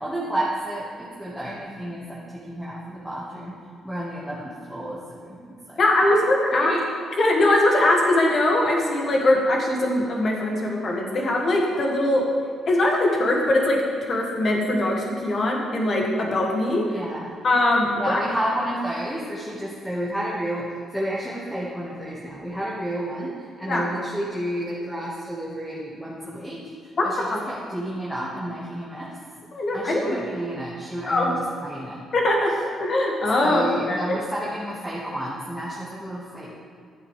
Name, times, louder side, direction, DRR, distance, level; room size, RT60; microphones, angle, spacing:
voice 1, 0.0-3.5 3.8-5.8 6.5-6.9 16.8-17.3 17.9-29.1 29.7-32.0 33.4-36.6, right 1 dB, ahead, -7 dB, 1.5 m, -31 dB
voice 2, 5.8-6.7 7.2-12.3 12.7-16.8 17.4-18.2 23.7-23.9 27.0-27.1 27.3-27.4 29.5-30.2 31.1-31.3 32.1-34.2, left 1 dB, 50° left, 0 dB, 1.7 m, -21 dB
11.5 x 8.0 x 3.2 m, 2.2 s
cardioid pair, 90°, 0 cm